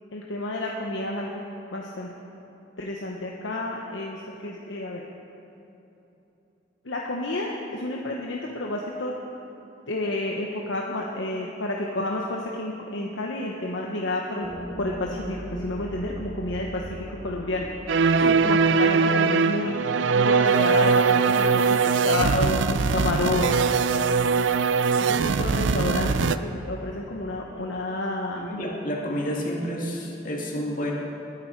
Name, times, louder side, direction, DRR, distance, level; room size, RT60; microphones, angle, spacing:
voice 1, 0.1-1.4 1.7-2.1 2.8-5.0 6.8-9.1 9.9-14.5 14.8-18.1 18.4-19.8 20.1-24.5 25.0-28.5, left 2 dB, 90° left, -1 dB, 1.1 m, -30 dB
sound 1, 14.4-19.8, right 1 dB, 30° right, 2.6 m, -38 dB
sound 2, 17.9-26.4, right 5 dB, 90° right, 0.5 m, -21 dB
voice 2, 28.4-30.9, equal, 45° left, -3 dB, 2.4 m, -30 dB
20.5 x 10.0 x 4.7 m, 3.0 s
head